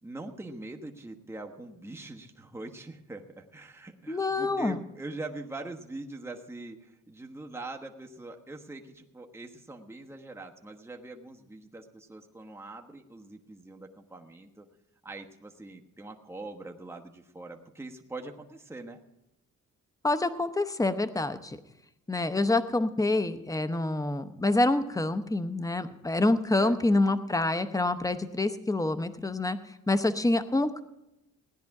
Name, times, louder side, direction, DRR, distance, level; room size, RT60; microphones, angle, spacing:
voice 1, 0.0-14.7 15.0-19.0 26.6-26.8, right 2 dB, 10° right, 2 dB, 1.2 m, -43 dB
voice 2, 4.1-4.8 20.0-21.6 22.1-29.6 29.9-30.8, left 2 dB, 10° left, 12 dB, 0.8 m, -27 dB
16.5 x 10.0 x 4.8 m, 0.91 s
cardioid pair, 105°, 32 cm